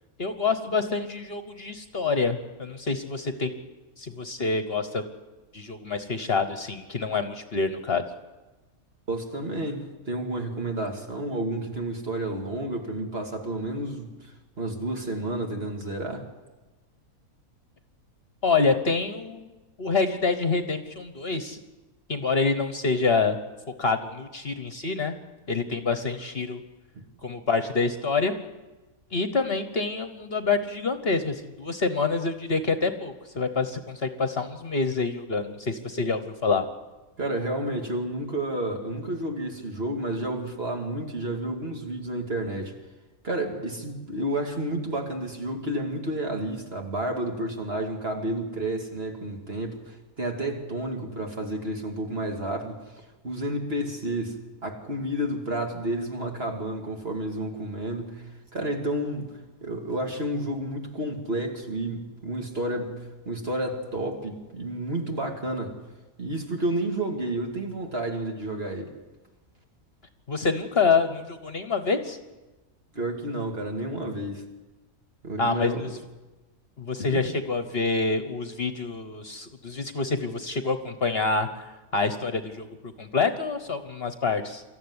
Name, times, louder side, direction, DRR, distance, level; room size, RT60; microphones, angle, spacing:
voice 1, 0.2-3.5 4.0-5.0 5.5-8.0 18.4-19.5 19.8-21.6 22.1-23.4 23.8-25.1 25.5-26.6 27.2-28.3 29.1-36.6 70.3-72.2 75.4-76.0 76.8-82.7 83.0-84.6, left 4 dB, 45° left, 9 dB, 1.3 m, -27 dB
voice 2, 9.1-16.3 26.9-27.1 37.2-42.7 43.2-65.8 66.2-68.9 72.9-74.4 75.2-75.9 77.1-77.2, right 1 dB, 40° right, 2 dB, 2.8 m, -31 dB
24.5 x 14.5 x 9.7 m, 1.2 s
omnidirectional pair, 1.5 m